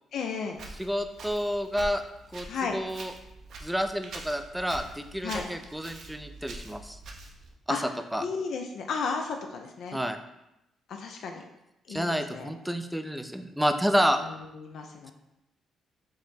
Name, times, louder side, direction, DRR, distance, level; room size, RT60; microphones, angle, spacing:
voice 1, 0.1-0.6 2.5-2.8 5.2-5.4 7.7-7.8 8.2-10.0 10.9-11.5 11.9-12.5 14.2-15.1, left 5 dB, 70° left, 3 dB, 0.4 m, -34 dB
Walk footsteps, 0.5-7.5, right 2 dB, 65° right, 0.6 m, -44 dB
voice 2, 0.8-2.0 2.3-2.5 2.7-3.1 3.6-7.0 7.7-7.8 8.1-8.3 9.9-10.2 11.9-14.2, equal, 5° right, 8 dB, 0.3 m, -29 dB
4.8 x 2.1 x 4.2 m, 0.89 s
cardioid pair, 90°, 0 cm